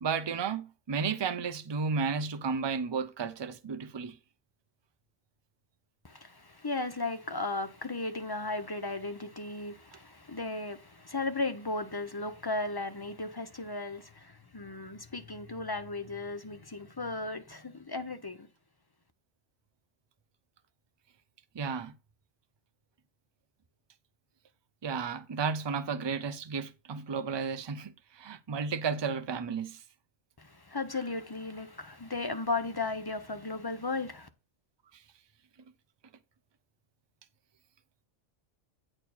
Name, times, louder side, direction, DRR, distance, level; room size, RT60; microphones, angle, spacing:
voice 1, 0.0-4.2 21.5-21.9 24.8-29.8, right 5 dB, 35° right, 0.4 m, -33 dB
voice 2, 6.0-18.5 30.4-34.3, left 3 dB, 25° left, 0.6 m, -36 dB
8.8 x 4.5 x 4.1 m
omnidirectional pair, 1.3 m